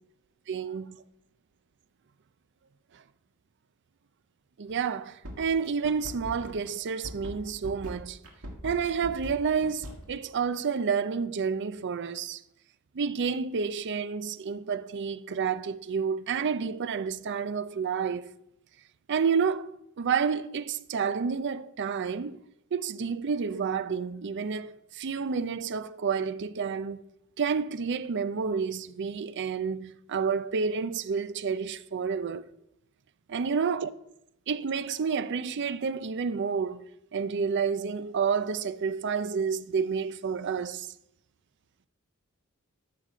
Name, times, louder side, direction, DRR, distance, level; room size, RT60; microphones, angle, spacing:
voice 1, 0.5-1.0 2.9-3.0 4.6-8.2 8.6-12.4 12.9-18.3 19.1-19.7 20.0-22.4 22.7-27.0 27.4-32.5 33.3-33.9 34.5-36.9 37.1-40.9, right 6 dB, 55° right, 0.5 m, -30 dB
sound 1, 4.7-4.9 5.2-10.0, equal, 80° right, 1.7 m, -40 dB
13.0 x 5.9 x 4.9 m
head